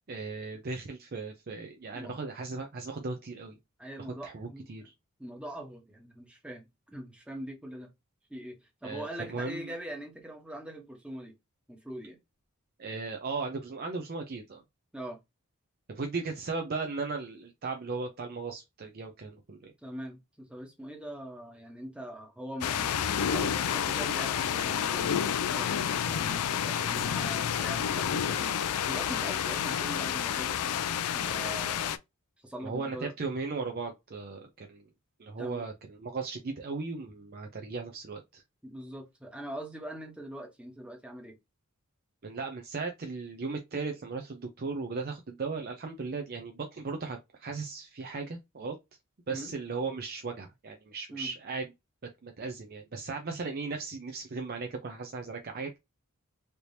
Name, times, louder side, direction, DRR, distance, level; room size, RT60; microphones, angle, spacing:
voice 1, 0.1-3.6 4.2-4.8 8.8-9.7 12.8-14.6 15.9-19.7 32.6-34.9 35.2-38.4 42.2-48.7 49.3-51.7 52.2-55.8, right 4 dB, 45° right, 0.5 m, -37 dB
voice 2, 3.8-4.9 5.2-7.9 8.3-11.4 11.7-12.2 14.9-15.2 19.8-30.6 31.1-31.9 32.4-33.1 35.4-35.6 38.6-41.4 49.3-49.5 51.1-51.3, right 1 dB, 5° right, 1.0 m, -42 dB
sound 1, 22.6-32.0, left 8 dB, 90° left, 0.4 m, -29 dB
3.3 x 2.9 x 2.6 m
head